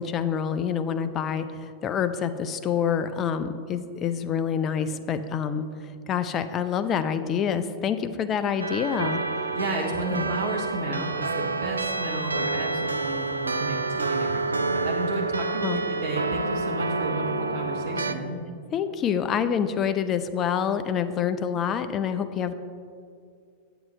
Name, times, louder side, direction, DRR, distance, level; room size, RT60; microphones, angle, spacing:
voice 1, 0.0-5.6 6.1-9.2 10.1-10.3 15.6-15.8 18.7-22.5, left 8 dB, 30° left, 10 dB, 0.4 m, -27 dB
sound 1, 8.6-18.1, right 3 dB, 80° right, 0.3 m, -28 dB
voice 2, 9.5-18.4, right 2 dB, 50° right, 0 dB, 1.0 m, -32 dB
8.5 x 8.0 x 3.2 m, 2.3 s
figure-of-eight pair, 90°, 0 cm